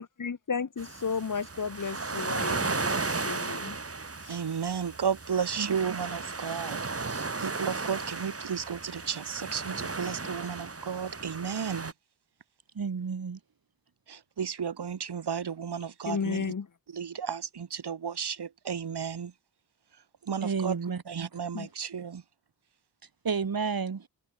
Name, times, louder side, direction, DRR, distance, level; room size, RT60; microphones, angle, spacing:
voice 1, 0.0-3.8 4.2-4.4 16.0-16.7 21.5-21.7, left 5 dB, 50° left, 1.5 m, -33 dB
sound 1, 0.8-11.9, right 3 dB, 35° right, 2.3 m, -35 dB
voice 2, 4.3-11.9 14.1-16.5 16.9-19.3 20.2-20.8 21.1-22.2, right 7 dB, 80° right, 1.6 m, -33 dB
voice 3, 12.7-13.4 20.4-21.3 23.2-24.1, right 5 dB, 60° right, 2.4 m, -31 dB
wide cardioid pair, 105°, 39 cm